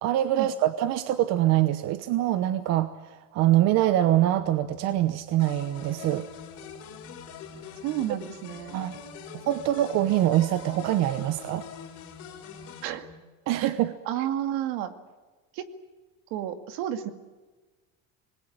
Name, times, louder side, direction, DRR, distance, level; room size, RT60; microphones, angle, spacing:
voice 1, 0.0-6.3 8.7-9.0 9.5-11.6 13.5-13.9, right 13 dB, 50° right, 11 dB, 1.0 m, -24 dB
sound 1, 4.4-13.2, left 1 dB, 20° right, 2.9 m, -50 dB
sound 2, 5.4-12.9, left 8 dB, 45° left, 4.6 m, -44 dB
voice 2, 7.8-8.8 12.8-13.1 13.6-13.7 14.1-14.9 15.5-15.7 16.3-17.1, right 11 dB, 70° right, 8 dB, 2.3 m, -31 dB
26.5 x 20.5 x 8.8 m, 1.3 s
cardioid pair, 170°, 34 cm